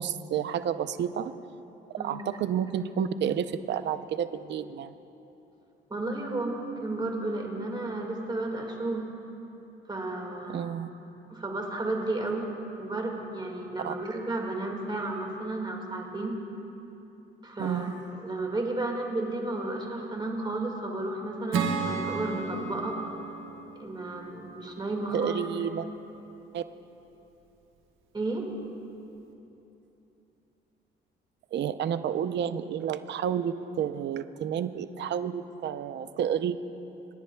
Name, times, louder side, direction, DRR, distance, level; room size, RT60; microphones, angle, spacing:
voice 1, 0.0-1.3 2.0-4.9 10.5-10.9 13.8-13.9 17.6-18.0 25.1-25.8 26.5-26.6 31.5-36.6, right 8 dB, 60° right, 12 dB, 0.5 m, -30 dB
voice 2, 5.9-9.1 9.9-10.7 11.3-12.5 12.8-16.4 17.4-17.9 18.2-23.0 23.8-25.4 28.1-28.5, right 2 dB, 20° right, 1 dB, 1.8 m, -32 dB
Acoustic guitar / Strum, 21.5-25.0, right 5 dB, 85° right, 1.1 m, -33 dB
26.5 x 10.5 x 2.2 m, 3.0 s
cardioid pair, 90°, 20 cm